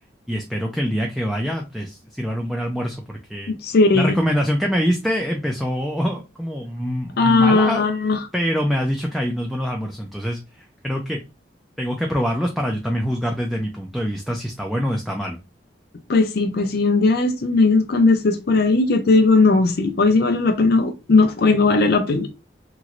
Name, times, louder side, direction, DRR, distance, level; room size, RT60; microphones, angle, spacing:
voice 1, 0.3-3.5 3.9-7.9 8.3-11.2 11.8-15.4, equal, ahead, 0.4 m, -25 dB
voice 2, 3.5-4.2 7.2-8.2 16.1-22.3, left 3 dB, 60° left, 0.5 m, -17 dB
3.0 x 3.0 x 2.4 m
head